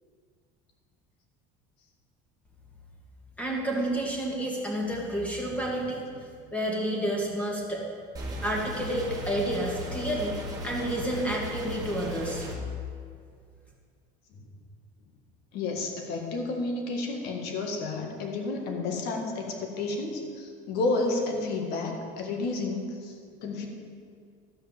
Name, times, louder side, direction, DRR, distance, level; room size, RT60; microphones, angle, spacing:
voice 1, 3.4-6.0 6.5-7.8 8.4-10.3 10.6-12.5, right 1 dB, 10° left, -2 dB, 2.3 m, -30 dB
voice 2, 5.5-5.9 8.4-8.5 14.3-14.5 15.5-23.7, left 3 dB, 65° left, 2 dB, 1.9 m, -31 dB
sound 1, 8.1-12.5, equal, 20° right, 2.1 m, -36 dB
13.0 x 5.6 x 7.3 m, 2.2 s
cardioid pair, 130°, 18 cm